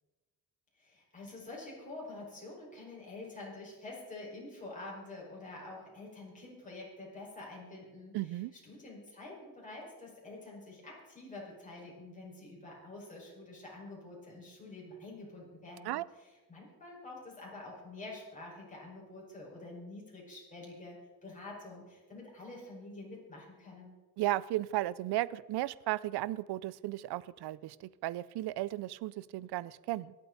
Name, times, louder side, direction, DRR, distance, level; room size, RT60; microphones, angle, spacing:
voice 1, 0.8-23.9, left 2 dB, 20° left, -4 dB, 5.2 m, -47 dB
voice 2, 8.1-8.5 15.8-16.0 24.2-30.1, right 16 dB, 75° right, 20 dB, 0.6 m, -35 dB
24.0 x 8.4 x 4.0 m, 1.2 s
cardioid pair, 130°, 39 cm